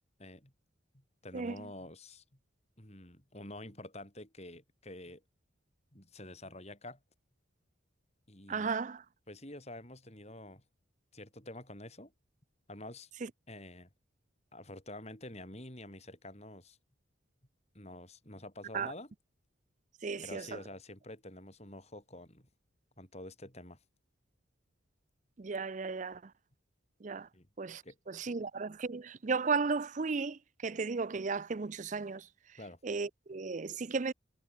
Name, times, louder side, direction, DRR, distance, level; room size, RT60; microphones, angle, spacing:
voice 1, 0.2-0.5 0.9-2.2 2.8-5.2 5.9-7.0 8.3-8.7 9.3-10.6 11.1-12.1 12.7-13.1 13.5-13.9 14.5-16.8 17.8-19.1 20.2-22.5 23.0-23.8 27.3-27.5 27.8-28.0 32.6-32.8, left 1 dB, 35° left, 6.8 m, -48 dB
voice 2, 1.3-1.7 8.5-9.0 13.2-13.3 18.7-18.9 20.0-20.6 25.4-26.3 27.0-27.3 27.6-32.3 32.8-34.1, right 4 dB, 40° right, 0.5 m, -35 dB
head